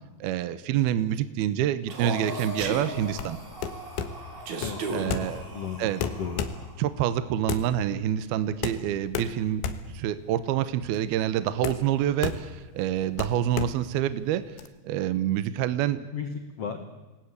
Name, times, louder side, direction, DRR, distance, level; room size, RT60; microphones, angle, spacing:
voice 1, 0.2-3.4 4.9-5.4 5.8-6.0 6.8-9.6 9.9-14.6 14.8-16.1, right 11 dB, 75° right, 14 dB, 2.6 m, -27 dB
Breathing, 1.9-6.8, left 1 dB, 10° right, 3.8 m, -41 dB
Human voice, 1.9-2.9 4.5-5.1, right 5 dB, 60° right, 4.1 m, -33 dB
sound 1, 2.6-14.7, left 7 dB, 90° left, 3.8 m, -35 dB
voice 2, 4.6-5.1 5.5-6.4 16.1-16.8, left 6 dB, 55° left, 7 dB, 1.8 m, -34 dB
28.5 x 20.0 x 8.3 m, 1.2 s
omnidirectional pair, 5.2 m